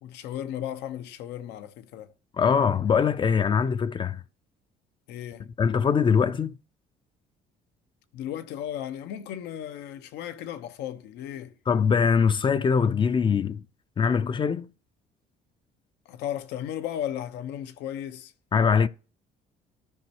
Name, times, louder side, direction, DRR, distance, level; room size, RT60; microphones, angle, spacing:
voice 1, 0.0-2.1 5.1-5.5 8.1-11.6 16.0-18.3, left 10 dB, 85° left, 0.9 m, -35 dB
voice 2, 2.4-4.2 5.6-6.5 11.7-13.6 14.0-14.7 18.5-18.9, left 6 dB, 30° left, 0.4 m, -22 dB
13.5 x 5.3 x 2.9 m
cardioid pair, 110°, 17 cm